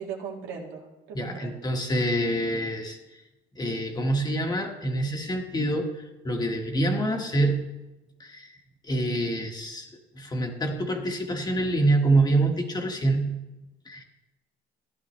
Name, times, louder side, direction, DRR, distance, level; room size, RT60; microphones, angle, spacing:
voice 1, 0.0-1.6, right 6 dB, 90° right, -1 dB, 2.1 m, -38 dB
voice 2, 1.1-3.2 3.5-7.7 8.2-8.6 8.8-9.9 10.1-13.3 13.8-14.0, right 2 dB, 25° left, 3 dB, 1.6 m, -26 dB
14.5 x 11.0 x 3.2 m, 1.0 s
cardioid pair, 110°, 17 cm